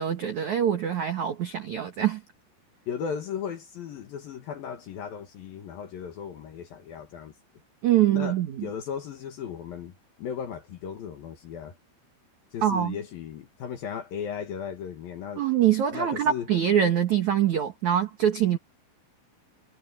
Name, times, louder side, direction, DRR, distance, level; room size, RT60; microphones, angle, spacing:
voice 1, 0.0-2.2 7.8-8.7 12.6-13.0 15.4-18.6, right 10 dB, 70° right, 1.8 m, -24 dB
voice 2, 2.9-7.3 8.1-11.7 12.5-15.4 15.9-16.5, left 7 dB, 60° left, 2.7 m, -36 dB
omnidirectional pair, 5.8 m